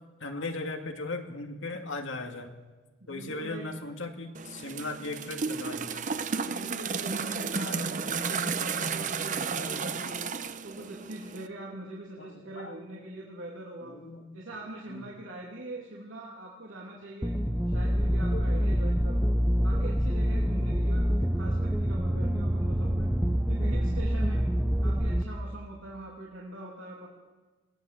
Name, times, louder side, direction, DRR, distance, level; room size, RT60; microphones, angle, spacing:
voice 1, 0.2-2.6 3.1-6.1 7.5-7.8 8.2-8.8 9.5-10.2 10.8-10.9 12.2-12.8 13.9-14.2 14.9-15.0 18.3-18.4, left 2 dB, 75° left, 4 dB, 2.2 m, -38 dB
voice 2, 3.0-3.7 6.4-10.3 10.6-13.9 14.3-17.3 17.7-19.3 19.6-23.1 23.5-24.5 24.8-27.1, right 1 dB, 85° right, -3 dB, 3.1 m, -43 dB
sound 1, 4.3-11.5, right 5 dB, 40° right, 0.8 m, -33 dB
sound 2, 17.2-25.2, equal, 5° right, 0.9 m, -26 dB
21.5 x 17.0 x 7.7 m, 1.3 s
head